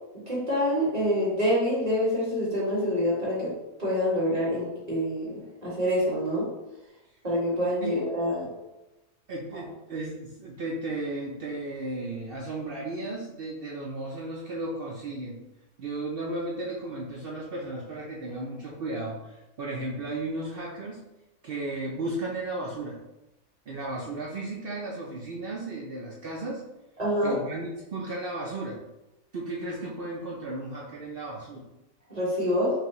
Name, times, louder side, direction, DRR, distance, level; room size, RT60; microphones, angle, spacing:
voice 1, 0.3-3.5 3.8-5.4 5.6-6.4 7.2-8.4 27.0-27.4 32.1-32.7, equal, 25° right, -8 dB, 1.6 m, -26 dB
voice 2, 9.3-15.4 15.8-21.0 21.4-23.0 23.7-26.6 27.2-28.8 29.3-31.6, right 2 dB, 70° right, -3 dB, 0.5 m, -34 dB
5.7 x 2.3 x 2.9 m, 0.97 s
omnidirectional pair, 1.6 m